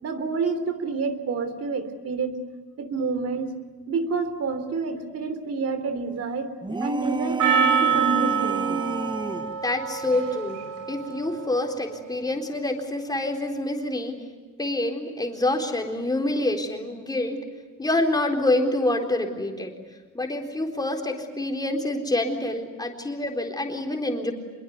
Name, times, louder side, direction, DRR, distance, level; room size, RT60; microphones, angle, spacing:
voice 1, 0.0-2.4 2.8-3.6 3.9-6.5 6.8-8.8, right 4 dB, 55° right, 10 dB, 3.4 m, -29 dB
sound 1, 6.6-9.6, right 3 dB, 15° right, 1.1 m, -29 dB
Percussion, 7.4-12.0, right 8 dB, 80° right, 5.6 m, -26 dB
voice 2, 9.5-10.6 10.9-14.2 14.6-17.4 17.8-19.7 20.1-24.3, left 1 dB, 15° left, 3 dB, 4.1 m, -26 dB
26.0 x 22.5 x 9.7 m, 1.4 s
cardioid pair, 115°, 31 cm